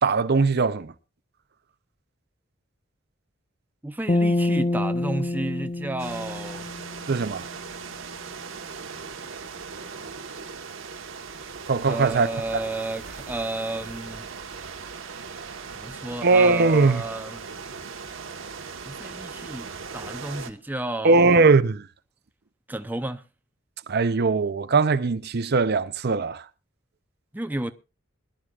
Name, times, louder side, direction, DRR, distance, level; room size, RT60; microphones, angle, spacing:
voice 1, 0.0-0.9 7.1-7.4 11.7-12.3 16.2-17.0 21.0-21.8 23.9-26.4, right 4 dB, 55° right, 0.7 m, -20 dB
voice 2, 3.8-6.7 11.9-14.2 15.7-17.4 18.8-21.4 22.7-23.2 27.3-27.7, right 1 dB, 10° right, 0.6 m, -32 dB
sound 1, 4.1-7.4, left 2 dB, 30° left, 0.6 m, -26 dB
sound 2, 6.0-20.5, right 5 dB, 80° right, 1.3 m, -39 dB
22.5 x 11.5 x 2.4 m
head